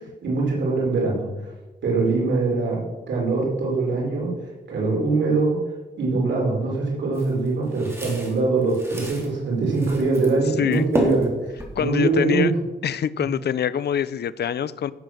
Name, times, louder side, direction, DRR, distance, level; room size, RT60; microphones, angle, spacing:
voice 1, 0.2-1.3 1.8-2.8 3.1-4.3 4.7-5.6 6.0-11.3 11.7-12.5, right 3 dB, 90° right, -3 dB, 4.5 m, -22 dB
bottle to sand, 7.1-9.3 9.7-10.4 10.6-12.2, right 1 dB, 15° right, 3.2 m, -30 dB
voice 2, 11.8-12.5 12.8-14.9, left 9 dB, 65° left, 16 dB, 0.6 m, -24 dB
15.5 x 7.7 x 6.3 m, 1.1 s
wide cardioid pair, 135°, 18 cm